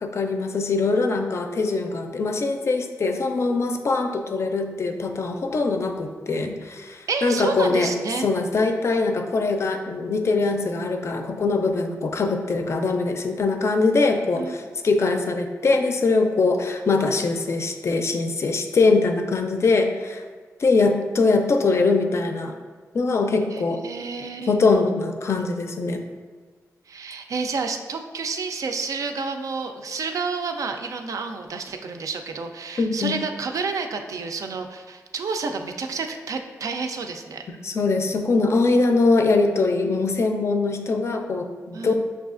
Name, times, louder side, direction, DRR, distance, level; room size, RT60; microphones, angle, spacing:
voice 1, 0.0-7.9 8.2-20.2 20.6-22.6 22.9-23.8 24.5-26.0 32.8-33.2 37.6-42.0, left 3 dB, 50° left, 5 dB, 0.4 m, -22 dB
voice 2, 7.1-8.3 14.4-14.6 23.5-24.6 26.9-37.4 41.7-42.0, right 4 dB, 70° right, 6 dB, 0.3 m, -30 dB
6.0 x 2.4 x 2.4 m, 1.5 s
wide cardioid pair, 90°, 6 cm